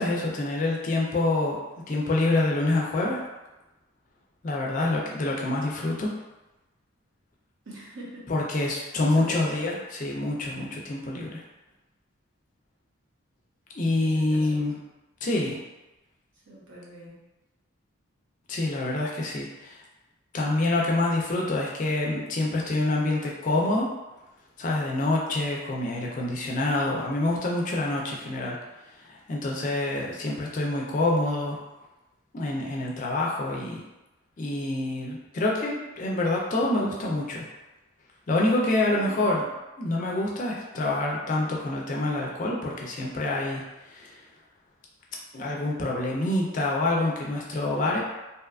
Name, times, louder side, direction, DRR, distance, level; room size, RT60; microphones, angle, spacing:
voice 1, 0.0-1.6 1.9-3.2 4.4-6.1 8.3-11.4 13.8-14.8 15.2-15.6 18.5-19.8 20.3-23.9 24.6-28.6 29.0-31.6 32.3-33.8 34.4-37.5 38.3-39.4 39.8-44.2 45.3-48.0, left 2 dB, 40° left, -2 dB, 0.3 m, -26 dB
voice 2, 7.6-8.3 8.6-9.7 14.0-14.6 16.5-17.2 38.9-39.4, right 1 dB, 60° right, -7 dB, 0.9 m, -43 dB
2.7 x 2.3 x 2.3 m, 1.0 s
head